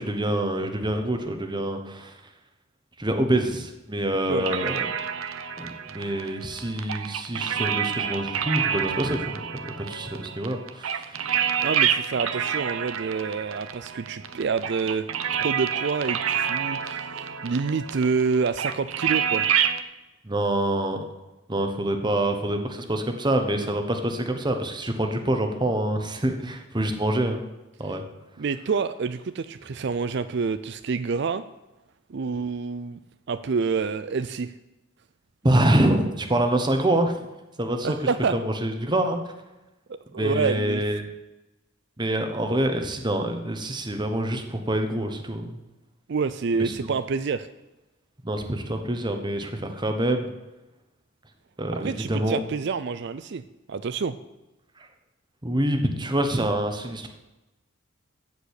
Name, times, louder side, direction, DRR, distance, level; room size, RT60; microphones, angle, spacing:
voice 1, 0.0-2.1 3.0-4.9 5.6-11.3 20.2-21.0 21.5-27.4 27.8-28.0 35.4-37.2 37.6-38.0 38.3-39.2 40.2-41.0 42.0-45.6 46.6-46.9 48.2-50.3 51.6-52.4 55.4-57.1, right 1 dB, 20° right, 5 dB, 1.2 m, -26 dB
sound 1, 4.4-19.8, right 8 dB, 80° right, 0.8 m, -28 dB
voice 2, 11.6-15.1 15.4-19.5 28.4-31.5 32.1-33.0 33.3-34.5 37.8-38.4 39.9-40.8 46.1-47.5 51.7-53.4 53.7-54.2, right 5 dB, 55° right, 12 dB, 0.4 m, -27 dB
14.5 x 5.2 x 8.3 m, 1.0 s
head